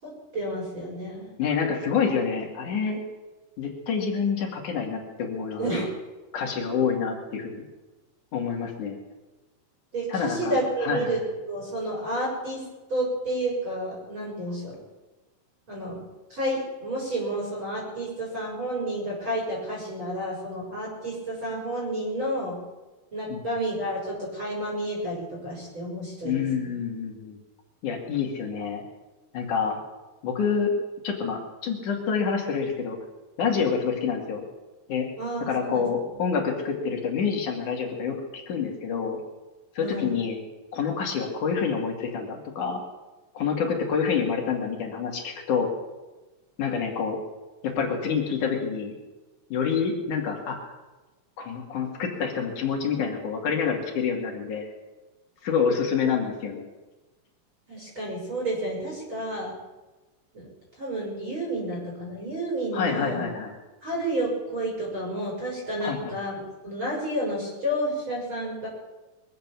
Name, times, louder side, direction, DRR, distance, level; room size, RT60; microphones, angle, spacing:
voice 1, 0.0-1.3 5.6-5.9 9.9-11.2 11.5-12.6 12.9-14.7 15.7-16.0 16.3-22.6 23.1-26.4 26.6-26.7 35.2-35.8 39.8-40.1 57.7-59.5 60.3-60.5 60.8-63.3 63.8-66.4 66.6-68.7, right 1 dB, 35° right, -4 dB, 5.7 m, -30 dB
voice 2, 1.4-3.0 3.6-5.9 6.3-7.6 8.3-9.0 10.1-11.2 23.3-23.4 26.2-27.4 27.8-28.8 29.3-29.8 30.2-30.7 31.0-33.0 33.4-34.4 34.9-35.1 35.5-39.2 39.8-40.4 40.7-42.8 43.4-45.7 46.6-47.2 47.6-48.9 49.5-50.7 51.4-54.7 55.4-56.7 62.7-63.5 65.8-66.1, left 6 dB, 65° left, 1 dB, 3.8 m, -27 dB
23.5 x 7.9 x 7.0 m, 1.1 s
omnidirectional pair, 3.8 m